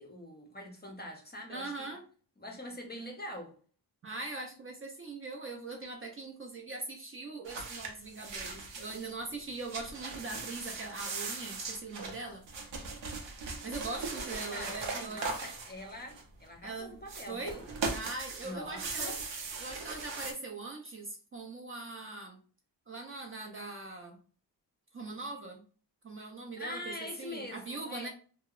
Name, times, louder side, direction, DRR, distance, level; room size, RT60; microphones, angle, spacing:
voice 1, 0.0-1.9 2.4-3.5 14.5-17.7 18.4-19.2 26.6-28.1, left 1 dB, 25° left, 0.5 m, -44 dB
voice 2, 1.5-2.0 4.0-12.4 13.6-15.3 16.6-17.0 17.3-17.6 17.9-19.2 19.6-22.4 22.9-24.2 24.9-25.7 26.0-28.1, right 3 dB, 30° right, 0.4 m, -41 dB
sound 1, 7.4-9.1 9.5-16.5 17.0-20.3, right 4 dB, 85° right, 0.7 m, -39 dB
2.7 x 2.1 x 2.3 m
wide cardioid pair, 120°, 42 cm